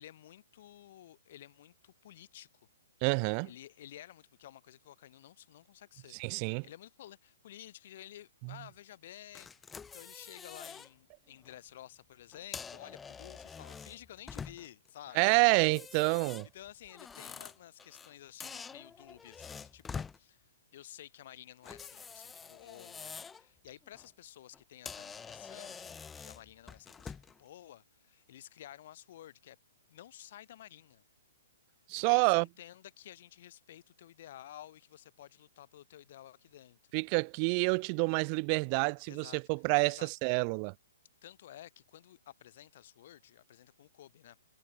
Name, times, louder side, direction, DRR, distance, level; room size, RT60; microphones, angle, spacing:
voice 1, 0.0-2.7 3.4-9.6 9.9-15.5 16.5-29.6 29.9-31.0 31.9-36.8 39.1-39.4 39.8-40.1 41.2-44.4, left 12 dB, 40° left, 2.5 m, -53 dB
voice 2, 3.0-3.5 6.2-6.6 15.2-16.5 31.9-32.5 36.9-40.7, right 40 dB or more, 25° right, 0.4 m, -28 dB
sound 1, 9.3-10.9 11.3-11.5 12.3-14.9 15.5-18.1 18.4-20.2 21.6-23.4 23.8-24.1 24.5-24.6 24.8-27.4, left 6 dB, 10° left, 1.3 m, -46 dB
hypercardioid pair, 170°, 0 cm